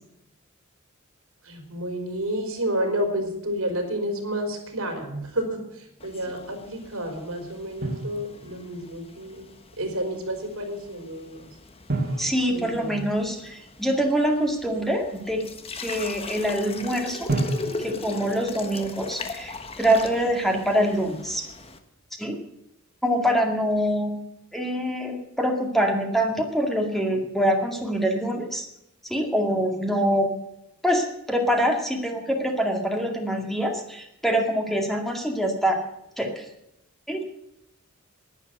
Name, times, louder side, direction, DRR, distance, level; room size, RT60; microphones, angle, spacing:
voice 1, 1.4-9.5 9.8-11.4 12.5-13.1, equal, 85° right, 5 dB, 4.0 m, -30 dB
sound 1, 6.0-21.8, left 3 dB, 30° left, 1.3 m, -40 dB
Drum, 7.8-8.9 11.9-13.7 17.3-19.3, right 2 dB, 45° right, 2.4 m, -32 dB
voice 2, 12.2-15.5 15.7-17.3 17.8-21.5 22.2-22.4 23.0-24.2 24.5-28.7 29.1-30.4 30.8-35.8 36.2-36.5 37.1-37.2, equal, ahead, 2 dB, 2.1 m, -25 dB
11.5 x 11.0 x 7.8 m, 0.82 s
head